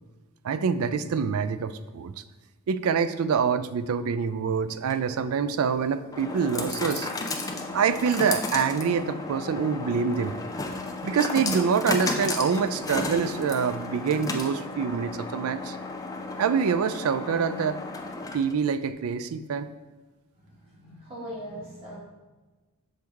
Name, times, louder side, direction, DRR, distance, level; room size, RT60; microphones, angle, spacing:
voice 1, 0.4-2.1 2.7-7.1 7.7-10.3 11.0-15.8 16.4-17.8 18.3-19.7, right 6 dB, 75° right, 13 dB, 0.4 m, -26 dB
sound 1, 4.7-18.7, left 3 dB, 15° left, 0.4 m, -34 dB
voice 2, 20.4-22.0, equal, 25° right, -7 dB, 2.0 m, -40 dB
6.3 x 4.6 x 3.5 m, 1.2 s
head